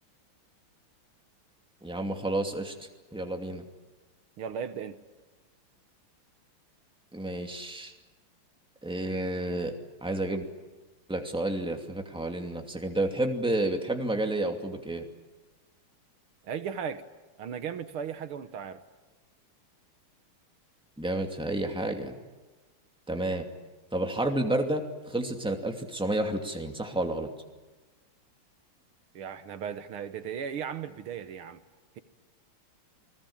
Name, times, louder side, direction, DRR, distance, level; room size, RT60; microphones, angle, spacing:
voice 1, 1.8-2.7 3.1-3.7 7.1-7.9 8.8-9.7 10.0-10.4 11.1-15.1 21.0-22.1 23.1-23.5 23.9-27.3, right 1 dB, ahead, 3 dB, 2.3 m, -30 dB
voice 2, 4.4-5.0 16.4-17.0 17.4-18.8 29.1-31.6, right 7 dB, 75° right, 10 dB, 2.0 m, -36 dB
28.5 x 20.0 x 8.8 m, 1.2 s
omnidirectional pair, 2.4 m